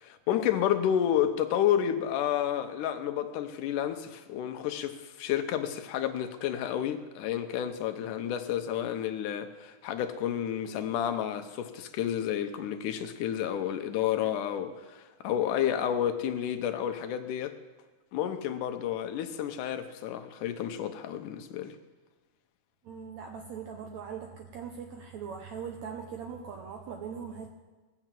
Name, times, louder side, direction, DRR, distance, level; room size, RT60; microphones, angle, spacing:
voice 1, 0.0-17.6 18.1-21.8, left 10 dB, 75° left, 2.2 m, -30 dB
voice 2, 22.8-27.5, right 7 dB, 75° right, 1.8 m, -40 dB
18.5 x 6.9 x 7.5 m
omnidirectional pair, 4.1 m